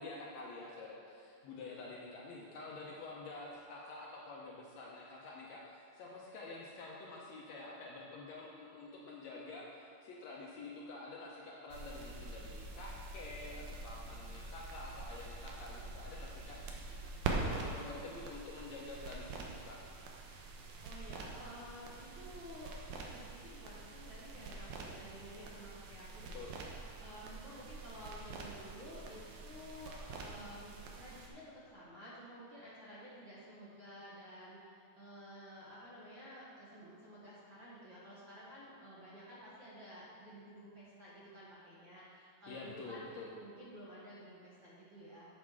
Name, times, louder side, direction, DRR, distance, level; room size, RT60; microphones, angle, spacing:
voice 1, 0.0-16.6 17.3-19.8 26.3-26.5 42.5-43.3, left 3 dB, 70° left, -3 dB, 1.9 m, -48 dB
sound 1, 11.7-31.3, right 3 dB, 85° right, 2.5 m, -45 dB
voice 2, 17.3-17.7 20.8-26.5 27.0-43.0 43.4-45.3, equal, 40° right, -8 dB, 2.2 m, -52 dB
8.4 x 6.1 x 6.1 m, 2.3 s
omnidirectional pair, 3.7 m